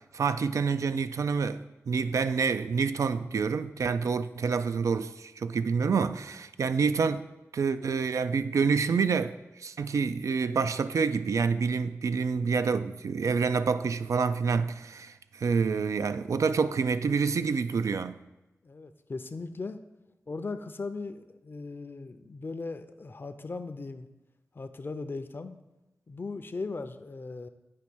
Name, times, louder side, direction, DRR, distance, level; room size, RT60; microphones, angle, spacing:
voice 1, 0.1-7.2 7.5-18.2, right 5 dB, 75° right, 0.3 m, -27 dB
voice 2, 18.6-19.8 20.3-24.1 24.5-25.6 26.1-27.5, left 3 dB, 40° left, 0.5 m, -38 dB
8.4 x 3.1 x 6.0 m
wide cardioid pair, 70°, 5 cm